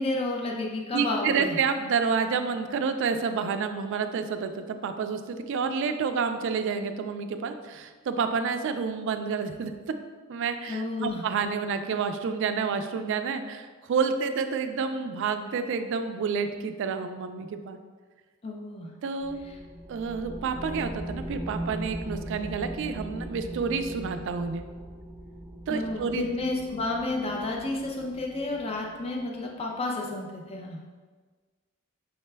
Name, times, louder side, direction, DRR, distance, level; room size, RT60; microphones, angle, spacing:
voice 1, 0.0-1.6 10.7-11.2 18.4-18.9 25.7-30.8, left 2 dB, 30° left, 0 dB, 0.4 m, -31 dB
voice 2, 0.9-9.7 10.3-17.8 19.0-19.4 19.9-24.6 25.7-26.2, right 5 dB, 60° right, 8 dB, 0.3 m, -29 dB
sound 1, 19.2-29.2, right 1 dB, 5° right, 0.7 m, -39 dB
5.7 x 2.2 x 3.3 m, 1.4 s
head